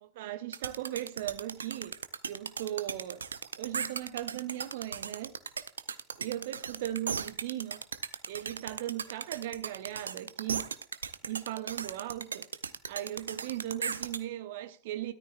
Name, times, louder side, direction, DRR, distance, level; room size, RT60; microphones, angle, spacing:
voice 1, 0.0-1.9 2.2-3.2 3.6-5.3 6.2-7.8 8.3-10.7 11.2-12.4 12.9-15.1, right 13 dB, 50° right, 1.0 m, -38 dB
sound 1, 0.5-14.2, right 6 dB, 70° right, 0.6 m, -36 dB
13.5 x 13.0 x 2.5 m
figure-of-eight pair, 90°, 0 cm